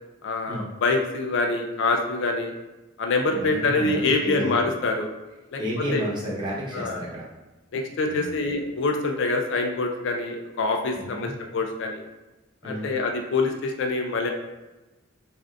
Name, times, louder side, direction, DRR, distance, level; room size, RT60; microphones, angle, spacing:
voice 1, 0.2-2.5 3.0-5.1 5.5-5.6 5.9-6.0 6.7-7.0 7.7-12.0 12.6-14.3, left 3 dB, 65° left, 3 dB, 0.4 m, -25 dB
voice 2, 3.3-4.7 5.6-7.3 8.1-8.4 10.9-11.3 12.6-12.9, equal, 25° right, -7 dB, 1.0 m, -31 dB
3.4 x 2.5 x 2.4 m, 1.1 s
head